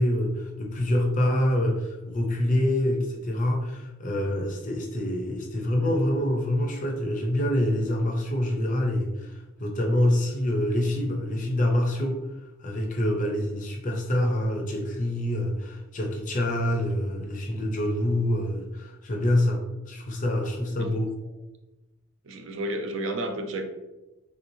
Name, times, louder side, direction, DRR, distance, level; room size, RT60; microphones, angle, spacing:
voice 1, 0.0-9.3 9.6-12.2 12.6-21.1, left 1 dB, 35° left, 2 dB, 0.5 m, -26 dB
voice 2, 22.2-23.6, right 1 dB, 60° right, 6 dB, 0.4 m, -32 dB
3.3 x 3.0 x 2.6 m, 1.0 s
head